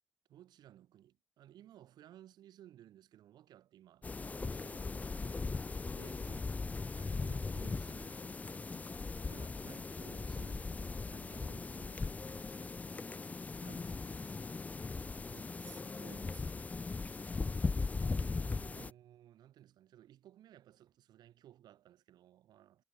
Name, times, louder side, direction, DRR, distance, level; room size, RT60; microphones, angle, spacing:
voice 1, 0.3-5.5 5.9-6.3 7.0-12.7 13.5-14.5 17.1-22.8, right 12 dB, 85° right, 4.7 m, -59 dB
sound 1, 4.0-18.9, left 4 dB, 20° left, 0.6 m, -39 dB
voice 2, 15.3-16.7 18.7-19.0, right 8 dB, 55° right, 5.3 m, -55 dB
cardioid pair, 135°, 7 cm